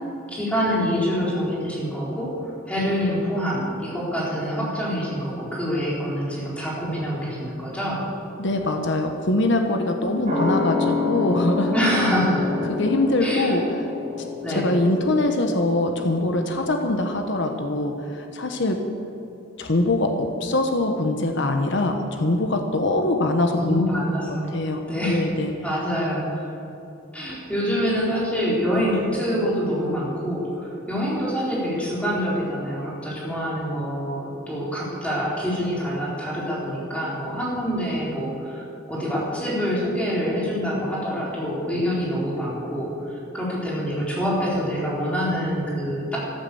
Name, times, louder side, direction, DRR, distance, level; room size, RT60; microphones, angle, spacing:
voice 1, 0.3-2.3 2.7-8.0 11.7-12.4 13.2-13.5 14.4-14.7 23.6-24.5 24.9-25.2 25.6-26.5 27.1-46.2, equal, 5° left, -6 dB, 4.3 m, -26 dB
voice 2, 8.4-11.7 12.7-13.6 14.5-18.8 19.6-23.8 24.3-25.5, left 2 dB, 65° left, 4 dB, 1.1 m, -23 dB
sound 1, 10.3-17.3 17.6-17.7, left 4 dB, 35° right, 4.5 m, -28 dB
14.0 x 12.5 x 7.1 m, 2.9 s
head